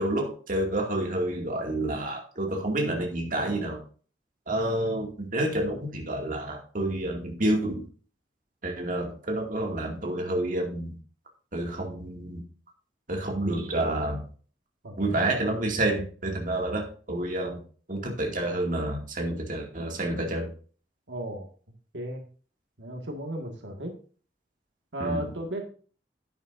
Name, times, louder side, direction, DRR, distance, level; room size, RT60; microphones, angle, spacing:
voice 1, 0.0-3.8 4.5-7.9 8.6-10.9 11.5-12.4 13.1-14.2 15.0-17.6 17.9-20.5 25.0-25.2, right 1 dB, 50° right, 1 dB, 2.4 m, -29 dB
voice 2, 14.8-15.2 21.1-21.5 21.9-22.2 22.8-23.9 24.9-25.6, right 1 dB, 85° right, 3 dB, 2.0 m, -35 dB
11.0 x 9.3 x 2.7 m, 0.39 s
head